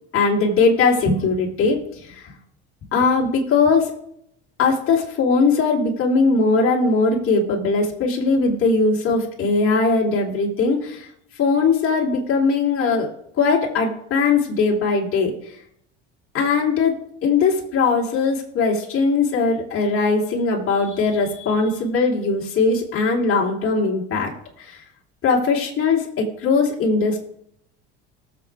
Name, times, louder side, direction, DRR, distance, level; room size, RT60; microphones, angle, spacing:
voice 1, 0.1-2.3 2.9-3.9 4.6-11.1 11.4-13.1 13.4-15.6 16.3-16.9 17.2-24.3 24.6-24.8 25.2-27.2, left 4 dB, 40° left, -3 dB, 3.5 m, -20 dB
19.5 x 7.6 x 3.6 m, 0.72 s
supercardioid pair, 90°, 32 cm